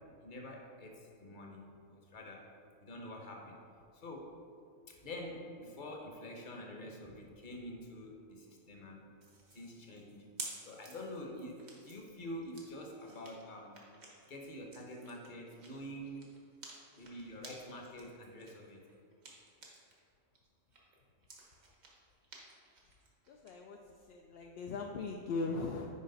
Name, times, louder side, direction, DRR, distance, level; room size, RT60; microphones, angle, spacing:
voice 1, 0.2-2.5 2.8-3.6 3.9-4.3 4.9-9.1 9.5-10.3 10.6-13.8 14.3-16.4 16.9-18.8, left 1 dB, 40° left, 1 dB, 1.1 m, -47 dB
sound 1, 9.2-20.0 20.3-23.5, right 3 dB, 80° right, 1.7 m, -53 dB
voice 2, 23.3-23.8 24.1-25.9, left 3 dB, 60° left, 1 dB, 0.7 m, -39 dB
9.4 x 4.9 x 3.9 m, 2.4 s
omnidirectional pair, 1.4 m